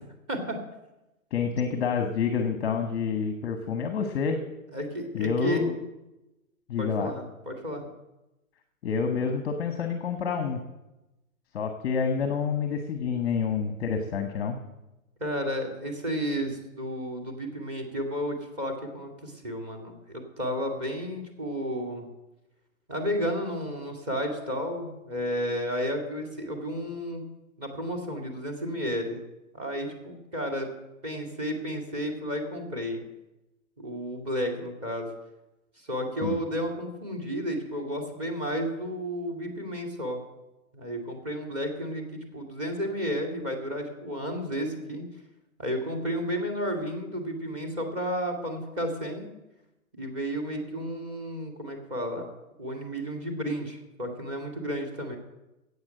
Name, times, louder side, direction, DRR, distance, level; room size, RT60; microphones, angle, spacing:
voice 1, 1.3-4.4 5.1-5.7 6.7-7.1 8.8-10.6 11.5-14.6 36.2-36.4, left 6 dB, 15° left, 5 dB, 0.9 m, -28 dB
voice 2, 4.7-5.6 6.8-7.9 15.2-22.1 22.9-27.2 27.6-29.2 29.5-30.7 31.0-33.0 33.8-35.1 35.8-40.2 40.7-45.0 45.6-49.3 49.9-52.3 52.6-55.2, equal, 25° right, 3 dB, 2.2 m, -32 dB
11.5 x 8.3 x 7.8 m, 0.98 s
hypercardioid pair, 165°, 42 cm